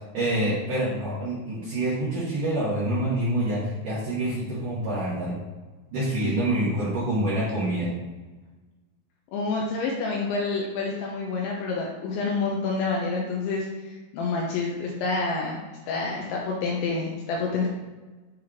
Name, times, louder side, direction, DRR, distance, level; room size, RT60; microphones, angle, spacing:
voice 1, 0.1-5.3 5.9-7.9, right 1 dB, 70° right, -9 dB, 2.0 m, -26 dB
voice 2, 9.3-13.7 14.1-15.6 15.9-17.7, left 4 dB, 90° left, -2 dB, 2.6 m, -28 dB
8.8 x 3.2 x 3.6 m, 1.2 s
omnidirectional pair, 6.0 m